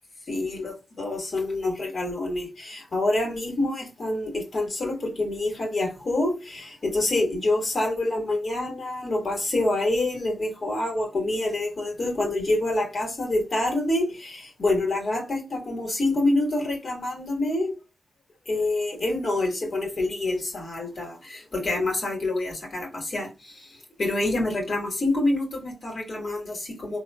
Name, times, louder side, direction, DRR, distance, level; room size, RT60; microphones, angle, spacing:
voice 1, 0.3-17.7 18.5-27.0, left 2 dB, 60° left, 1.4 m, -27 dB
3.6 x 2.3 x 2.2 m
cardioid pair, 50°, 0 cm